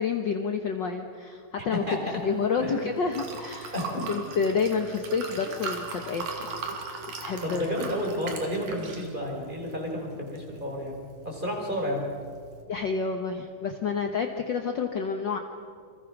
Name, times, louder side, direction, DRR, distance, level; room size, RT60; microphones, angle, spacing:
voice 1, 0.0-1.8 2.2-3.7 4.1-6.5 7.2-7.7 12.7-15.4, left 5 dB, 60° left, 4 dB, 1.2 m, -29 dB
voice 2, 1.6-2.2 2.6-2.9 3.7-4.0 7.4-11.0 11.2-12.1, equal, 15° right, 0 dB, 4.8 m, -31 dB
Liquid, 2.1-12.6, right 4 dB, 80° right, 4.3 m, -40 dB
29.0 x 25.5 x 6.1 m, 2.2 s
omnidirectional pair, 3.9 m